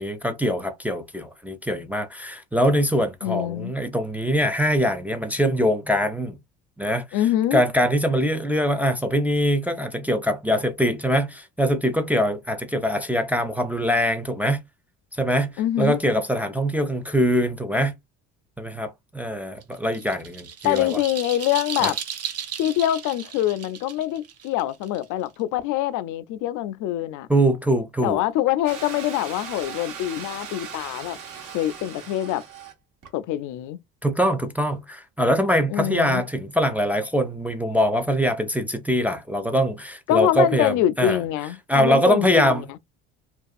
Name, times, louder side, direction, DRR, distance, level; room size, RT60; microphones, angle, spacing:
voice 1, 0.0-6.4 6.8-7.1 7.5-14.6 15.2-18.0 18.6-21.0 21.8-21.9 27.3-28.2 34.0-41.2 41.7-42.8, equal, 5° right, 0.4 m, -23 dB
voice 2, 3.2-3.7 7.1-7.6 15.6-16.0 20.6-22.0 22.6-27.3 28.0-31.2 31.5-32.4 33.1-33.8 35.7-36.2 40.1-42.6, left 13 dB, 60° left, 0.5 m, -24 dB
sound 1, 19.6-25.4, right 8 dB, 45° right, 0.7 m, -35 dB
sound 2, 28.7-32.7 33.0-33.1, right 7 dB, 60° right, 1.2 m, -38 dB
2.6 x 2.3 x 2.2 m
hypercardioid pair, 65°, 35 cm